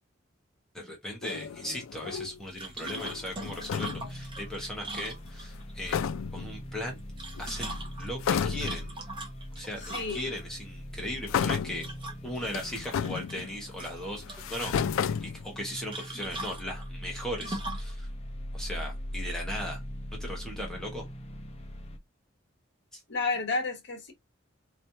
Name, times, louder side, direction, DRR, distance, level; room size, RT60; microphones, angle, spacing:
voice 1, 0.7-7.0 7.4-7.7 8.0-8.9 9.6-11.9 12.2-18.1 18.5-19.8 20.2-21.1 22.9-23.0, equal, 5° left, 1.2 m, -38 dB
sound 1, 1.2-2.4 2.8-4.2 5.6-5.7 5.9-6.6 7.4-7.8 8.2-8.9 9.9-10.0 11.3-12.0 12.4-13.7 14.2-15.8, left 7 dB, 85° left, 0.4 m, -32 dB
sound 2, 2.4-22.0, equal, 30° left, 0.6 m, -41 dB
sound 3, 2.6-5.7 7.0-10.4 11.8-12.5 12.8-13.5 13.8-14.7 15.9-17.9, right 2 dB, 25° right, 1.0 m, -41 dB
voice 2, 9.8-10.3 23.1-24.1, left 3 dB, 60° left, 1.2 m, -31 dB
4.2 x 3.2 x 2.8 m
head